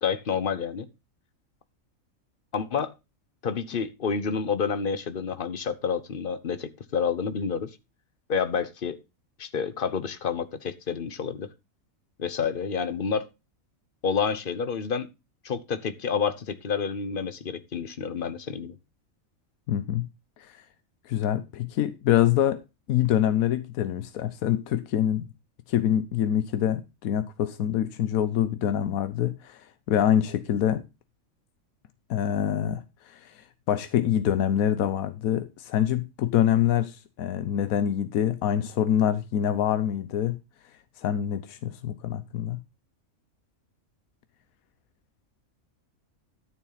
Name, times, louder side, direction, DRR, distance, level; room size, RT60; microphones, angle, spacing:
voice 1, 0.0-0.9 2.5-2.9 3.4-7.8 8.3-9.0 9.4-11.5 12.2-13.3 14.0-15.1 15.4-18.7, left 6 dB, 45° left, 1.0 m, -29 dB
voice 2, 19.7-20.1 20.4-20.6 21.1-22.6 22.9-25.3 25.7-30.8 32.1-40.4 41.0-42.6, left 10 dB, 85° left, 1.2 m, -25 dB
12.5 x 7.1 x 4.0 m
omnidirectional pair, 1.4 m